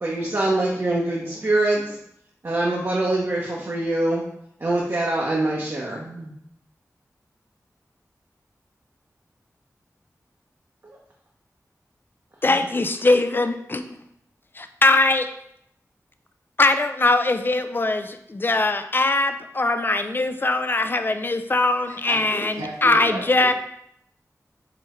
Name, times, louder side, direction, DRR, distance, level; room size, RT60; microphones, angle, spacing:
voice 1, 0.0-2.0 2.4-4.2 4.6-6.3 12.5-12.6, right 2 dB, 45° right, -4 dB, 0.7 m, -24 dB
voice 2, 12.4-13.9 14.6-15.3 16.6-23.5, left 2 dB, 35° left, 9 dB, 0.4 m, -21 dB
voice 3, 21.8-23.5, right 1 dB, 75° right, -4 dB, 1.4 m, -34 dB
4.8 x 3.4 x 3.0 m, 0.74 s
wide cardioid pair, 80°, 6 cm